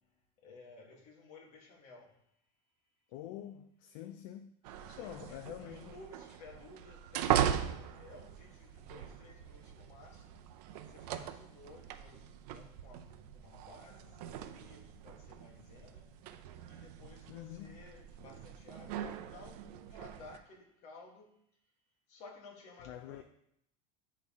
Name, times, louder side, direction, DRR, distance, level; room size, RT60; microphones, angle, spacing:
voice 1, 0.4-2.1 4.7-10.4 10.9-16.1 16.7-21.3 22.1-23.2, left 3 dB, 35° left, 1.5 m, -55 dB
voice 2, 3.1-4.6 5.0-5.9 17.3-17.8 22.9-23.2, left 12 dB, 50° left, 0.4 m, -46 dB
sound 1, 4.6-20.4, right 10 dB, 80° right, 0.6 m, -40 dB
9.2 x 4.2 x 3.6 m
supercardioid pair, 170°, 20 cm